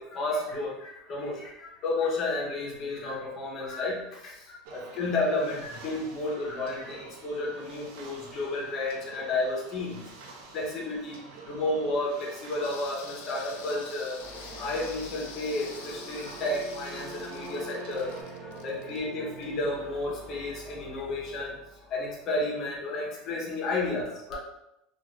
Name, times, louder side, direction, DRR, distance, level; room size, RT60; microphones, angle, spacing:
voice 1, 0.1-10.0 10.5-14.2 14.6-21.5 21.9-24.4, left 2 dB, 30° left, -3 dB, 0.7 m, -32 dB
sound 1, 4.6-18.2, right 3 dB, 65° right, 0.5 m, -48 dB
sound 2, 12.6-19.7 20.0-20.1, left 6 dB, 85° left, 0.4 m, -47 dB
sound 3, 14.2-22.1, right 1 dB, 15° right, 0.5 m, -45 dB
2.4 x 2.3 x 3.0 m, 0.85 s
supercardioid pair, 170°, 0 cm